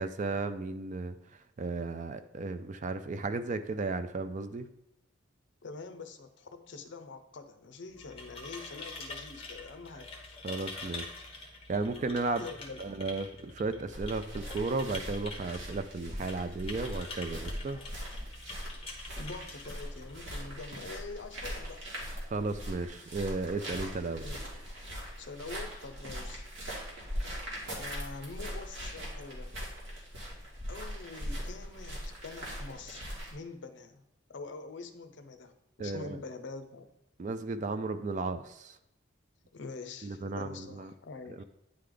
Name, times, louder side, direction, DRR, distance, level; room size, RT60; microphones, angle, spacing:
voice 1, 0.0-4.7 10.4-11.2 11.7-12.5 12.8-17.8 22.3-24.2 35.8-36.2 37.2-38.8 40.0-40.9 41.4-41.5, right 3 dB, 35° right, 10 dB, 0.3 m, -34 dB
voice 2, 5.6-10.4 12.4-12.9 19.1-21.9 24.2-24.5 25.2-26.5 27.7-29.5 30.7-33.0 33.3-34.0 34.3-36.9 39.5-41.4, left 4 dB, 60° left, 8 dB, 0.6 m, -45 dB
sound 1, 7.8-20.5, left 3 dB, 30° left, 1.1 m, -46 dB
sound 2, 13.9-33.3, equal, 75° right, 1.9 m, -41 dB
9.4 x 3.3 x 3.8 m, 0.84 s
head